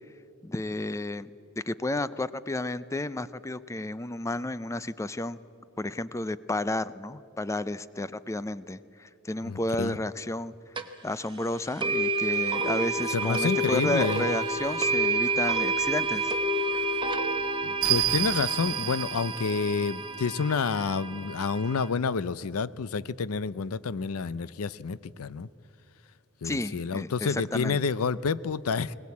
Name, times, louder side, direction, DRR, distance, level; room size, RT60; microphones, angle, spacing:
voice 1, 0.4-1.3 1.7-5.4 5.8-10.5 11.0-16.3 26.4-27.8, left 2 dB, 15° left, 16 dB, 0.4 m, -32 dB
voice 2, 9.4-10.0 13.1-14.3 17.6-25.5 26.4-28.9, left 5 dB, 75° left, 18 dB, 0.5 m, -29 dB
sound 1, 10.8-10.9 11.8-21.9, right 2 dB, 20° right, 1.0 m, -29 dB
sound 2, 13.2-20.7, right 14 dB, 65° right, 0.8 m, -34 dB
21.0 x 19.0 x 8.4 m, 2.6 s
head